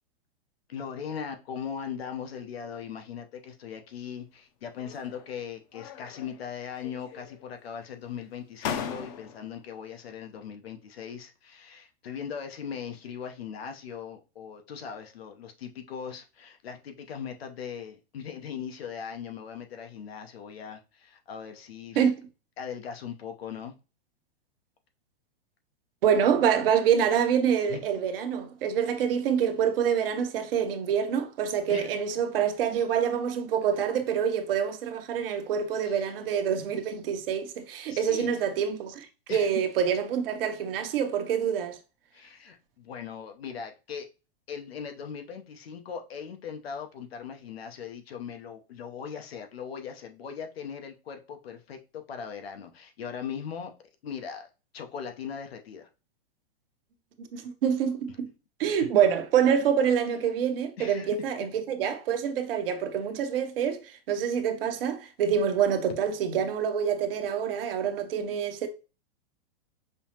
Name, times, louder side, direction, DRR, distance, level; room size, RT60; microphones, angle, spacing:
voice 1, 0.7-22.0 22.6-23.7 27.7-27.8 28.8-28.9 31.7-31.9 35.8-36.0 37.9-38.4 39.3-39.6 42.1-44.1 44.5-53.7 54.0-55.9 60.8-61.1, left 7 dB, 85° left, 0.9 m, -39 dB
sound 1, 4.8-5.4 5.7-6.5 6.8-7.6 8.2-8.3 8.6-9.6, left 7 dB, 45° left, 0.6 m, -38 dB
voice 2, 26.0-41.8 57.2-58.1 58.6-68.7, right 8 dB, 70° right, 0.8 m, -26 dB
5.4 x 2.0 x 2.9 m
hypercardioid pair, 125°, 30 cm